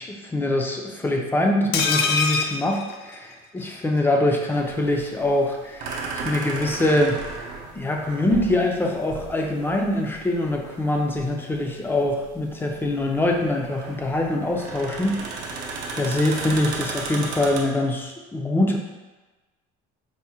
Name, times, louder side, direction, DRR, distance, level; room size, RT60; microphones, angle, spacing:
voice 1, 0.0-7.2 7.7-15.6 15.9-18.8, left 1 dB, 10° left, 1 dB, 0.4 m, -24 dB
sound 1, 1.7-3.7 4.0-4.1 4.4-4.5, left 4 dB, 65° left, 0.4 m, -24 dB
sound 2, 4.5-17.6, right 4 dB, 75° right, 0.6 m, -35 dB
4.7 x 2.1 x 2.8 m, 1.2 s
cardioid pair, 125°, 19 cm